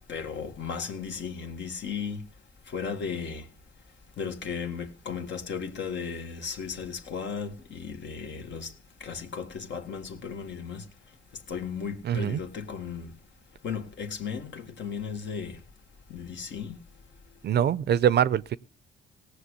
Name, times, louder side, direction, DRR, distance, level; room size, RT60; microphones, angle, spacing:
voice 1, 0.0-2.2 2.7-3.5 4.2-8.7 9.0-10.8 11.5-13.1 13.6-15.6 16.1-16.8, left 6 dB, 65° left, 1.9 m, -35 dB
voice 2, 12.1-12.4 17.4-18.6, right 9 dB, 55° right, 0.6 m, -23 dB
18.0 x 6.7 x 8.2 m
cardioid pair, 90°, 20 cm